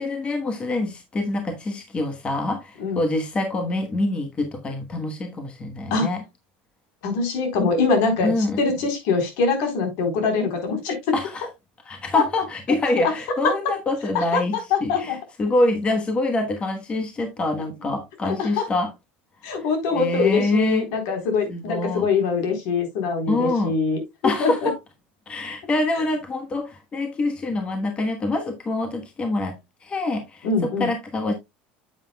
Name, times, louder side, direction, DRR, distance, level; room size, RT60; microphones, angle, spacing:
voice 1, 0.0-6.2 8.2-8.6 11.1-11.5 11.9-18.9 19.5-19.7 19.9-20.9 21.5-22.1 23.3-23.7 24.2-24.8 25.3-31.3, left 2 dB, 20° left, 1.2 m, -25 dB
voice 2, 7.0-11.0 12.1-12.2 13.0-13.1 13.4-13.5 14.1-14.4 14.7-15.2 18.2-18.6 19.4-24.7 30.4-30.9, left 4 dB, 65° left, 3.8 m, -23 dB
9.8 x 7.5 x 2.2 m
cardioid pair, 145°, 5 cm